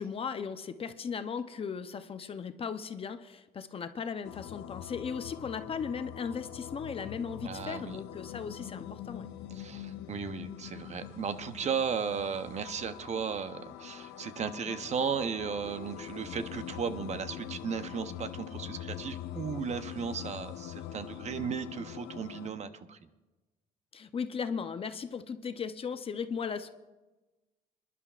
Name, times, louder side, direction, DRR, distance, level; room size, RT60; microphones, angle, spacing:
voice 1, 0.0-9.3 23.9-26.7, left 6 dB, 35° left, 9 dB, 0.6 m, -37 dB
sound 1, 4.2-22.5, left 11 dB, 85° left, 0.8 m, -43 dB
voice 2, 7.4-8.0 9.5-23.0, right 6 dB, 40° right, 10 dB, 0.8 m, -35 dB
28.0 x 11.0 x 2.4 m, 1.1 s
cardioid pair, 110°, 17 cm